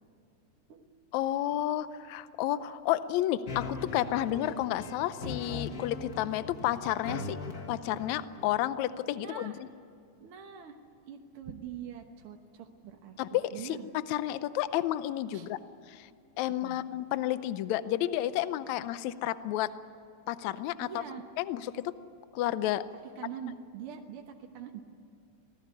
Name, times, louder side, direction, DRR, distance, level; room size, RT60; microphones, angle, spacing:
voice 1, 1.1-7.4 7.7-9.7 13.2-13.8 14.1-15.6 15.9-16.1 16.4-19.7 20.3-21.0 21.4-21.9 22.3-22.8, left 13 dB, 75° left, 14 dB, 2.0 m, -31 dB
sound 1, 3.5-8.5, left 3 dB, 40° left, 1.5 m, -40 dB
voice 2, 9.1-9.6 10.2-10.8 11.1-13.9 15.3-15.5 16.6-16.8 20.8-21.3 23.2-24.8, right 8 dB, 55° right, 3 dB, 1.8 m, -44 dB
26.0 x 18.0 x 9.7 m, 2.5 s
omnidirectional pair, 3.4 m